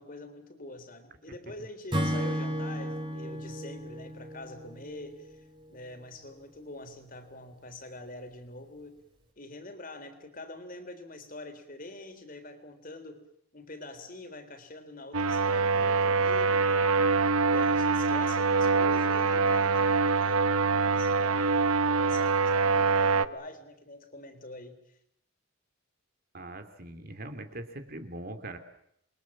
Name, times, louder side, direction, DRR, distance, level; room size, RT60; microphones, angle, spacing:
voice 1, 0.0-5.4 5.7-9.0 9.4-13.2 13.5-17.0 17.5-25.0, left 2 dB, 40° left, 8 dB, 3.8 m, -45 dB
Acoustic guitar / Strum, 1.9-5.3, equal, 20° right, 4.5 m, -33 dB
sound 1, 15.1-23.3, right 4 dB, 90° right, 1.0 m, -24 dB
voice 2, 26.3-28.6, right 1 dB, 45° right, 7 dB, 2.9 m, -41 dB
28.5 x 23.0 x 7.4 m, 0.73 s
head